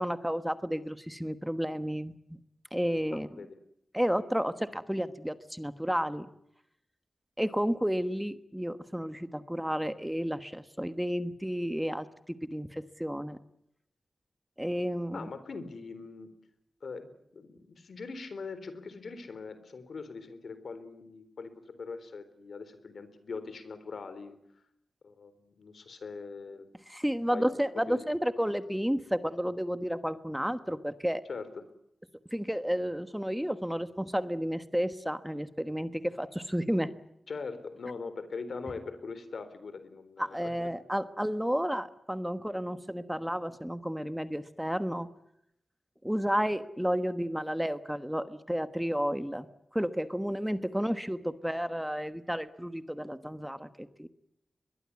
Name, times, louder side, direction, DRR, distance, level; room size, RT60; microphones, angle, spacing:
voice 1, 0.0-2.2 2.7-3.4 3.9-6.3 7.4-13.4 14.6-15.3 26.9-31.2 32.3-36.9 40.2-45.1 46.0-49.5 49.7-54.1, equal, 5° right, 11 dB, 1.3 m, -32 dB
voice 2, 3.1-3.6 15.1-16.3 16.8-24.4 25.0-26.7 27.3-27.5 27.9-28.0 31.3-31.6 37.3-40.5, left 4 dB, 75° left, 12 dB, 3.9 m, -42 dB
23.0 x 22.0 x 9.6 m, 0.78 s
wide cardioid pair, 115°, 0 cm